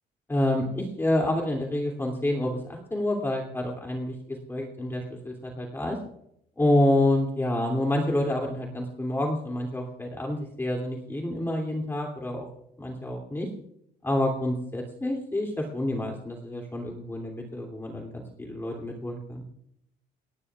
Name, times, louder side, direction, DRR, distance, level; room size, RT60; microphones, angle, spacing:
voice 1, 0.3-6.0 6.6-12.5 12.8-13.5 14.0-19.4, left 1 dB, 15° left, 0 dB, 2.6 m, -28 dB
29.5 x 11.0 x 2.4 m, 0.73 s
cardioid pair, 110°, 17 cm